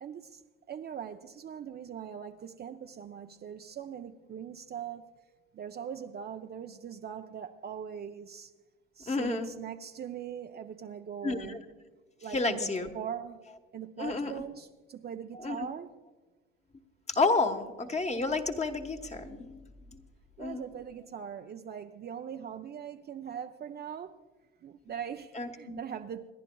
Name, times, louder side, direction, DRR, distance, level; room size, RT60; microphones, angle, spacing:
voice 1, 0.0-5.1 5.5-8.5 9.0-11.6 12.2-13.4 13.7-15.9 20.4-24.2 24.6-26.3, right 8 dB, 30° right, 0.6 m, -41 dB
voice 2, 9.1-9.5 11.2-11.6 12.3-12.9 14.0-14.3 15.3-15.7 17.1-19.6 19.9-20.0 20.4-20.6 25.3-25.8, left 3 dB, 20° left, 1.2 m, -30 dB
28.5 x 11.0 x 2.3 m
hypercardioid pair, 85°, 32 cm